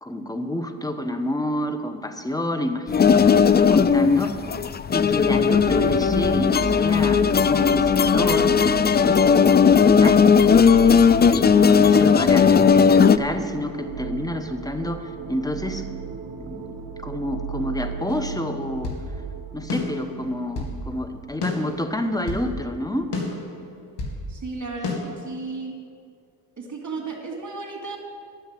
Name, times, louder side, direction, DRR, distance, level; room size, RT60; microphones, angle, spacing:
voice 1, 0.0-4.4 4.9-8.6 9.0-15.8 16.4-18.9 19.5-23.1, left 1 dB, 10° left, 8 dB, 1.1 m, -29 dB
sound 1, 2.9-13.2, left 6 dB, 25° left, 0.4 m, -17 dB
sound 2, 5.2-22.7, right 6 dB, 60° right, 1.1 m, -35 dB
sound 3, 18.1-19.1 19.7-20.8 21.4-22.5 23.1-24.2 24.8-25.0, left 3 dB, 65° left, 2.4 m, -31 dB
voice 2, 24.3-25.8 26.6-28.0, right 3 dB, 40° right, 1 dB, 3.0 m, -34 dB
10.5 x 7.4 x 8.4 m, 2.2 s
supercardioid pair, 50°, 45 cm